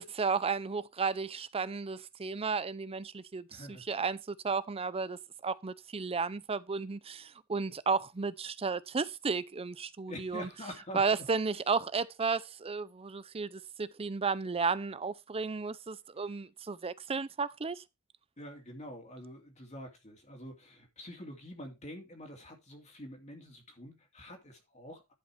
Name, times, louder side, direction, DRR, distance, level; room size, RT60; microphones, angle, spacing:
voice 1, 0.0-10.5 10.9-17.8, right 4 dB, 25° right, 0.5 m, -33 dB
voice 2, 3.5-3.9 10.1-11.2 18.4-25.1, equal, 30° left, 2.4 m, -46 dB
11.0 x 5.3 x 4.5 m
head